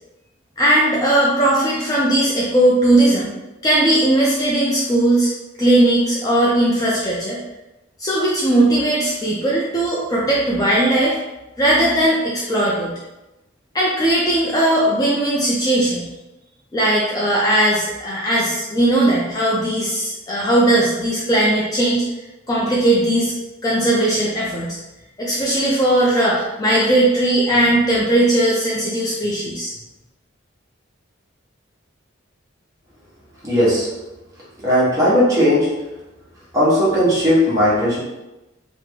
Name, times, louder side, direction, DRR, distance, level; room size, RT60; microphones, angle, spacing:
voice 1, 0.6-3.3 3.6-5.3 5.6-7.4 8.0-11.2 11.6-12.9 13.7-16.1 16.7-22.0 22.5-23.3 23.6-24.8 25.2-29.7, right 1 dB, 20° left, -5 dB, 0.4 m, -18 dB
voice 2, 33.4-33.9 34.6-35.8 36.5-38.0, equal, 20° right, -8 dB, 1.0 m, -16 dB
3.2 x 2.0 x 3.5 m, 1.0 s
head